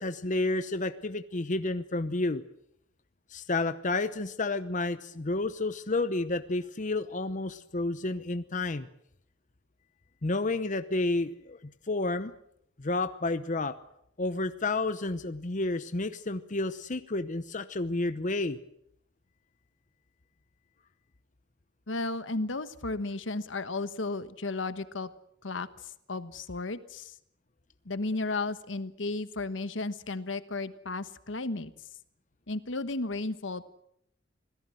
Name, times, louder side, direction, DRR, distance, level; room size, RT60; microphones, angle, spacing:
voice 1, 0.0-2.4 3.3-8.9 10.2-12.3 12.8-13.8 14.2-18.6, left 2 dB, 40° left, 11 dB, 0.9 m, -30 dB
voice 2, 21.9-25.1 25.4-27.1 27.8-31.7 32.5-33.7, left 3 dB, 80° left, 12 dB, 1.3 m, -34 dB
26.0 x 17.5 x 7.8 m, 0.75 s
head